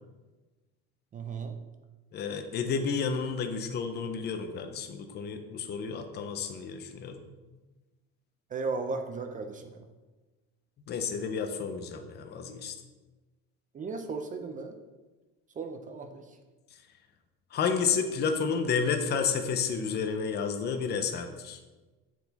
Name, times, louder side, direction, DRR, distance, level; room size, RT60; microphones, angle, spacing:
voice 1, 1.1-1.5 8.5-9.8 13.7-14.8 15.6-16.2, right 4 dB, 25° right, 6 dB, 0.4 m, -35 dB
voice 2, 2.1-7.3 10.9-12.7 17.5-21.6, left 5 dB, 30° left, 6 dB, 0.6 m, -31 dB
7.7 x 4.6 x 4.0 m, 1.2 s
cardioid pair, 150°, 33 cm